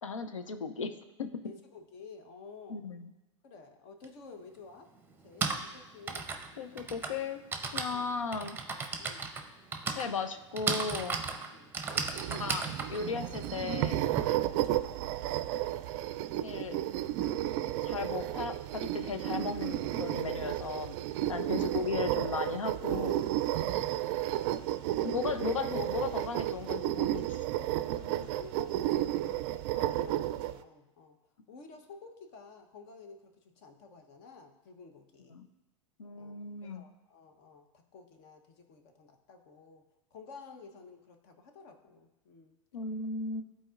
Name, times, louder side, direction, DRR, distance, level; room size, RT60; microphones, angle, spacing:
voice 1, 0.0-1.3 2.7-3.1 6.6-7.4 7.7-8.6 9.9-11.2 12.3-14.0 16.4-16.8 17.8-20.9 21.3-23.2 25.0-27.4 35.3-35.5 36.0-36.8 42.7-43.4, left 5 dB, 90° left, 10 dB, 0.6 m, -36 dB
voice 2, 1.4-2.8 3.4-4.9 5.2-6.3 7.9-8.1 9.0-9.3 11.5-11.7 14.4-14.6 21.2-21.7 23.5-24.0 27.8-31.2 31.5-35.4 36.1-39.8 40.1-42.5, left 4 dB, 55° left, 6 dB, 1.0 m, -52 dB
Typing, 4.0-4.1 5.1-14.2, right 4 dB, 15° right, 0.7 m, -36 dB
sound 1, 11.9-30.6, right 13 dB, 50° right, 0.4 m, -32 dB
12.5 x 4.2 x 2.5 m, 1.0 s
hypercardioid pair, 105°, 16 cm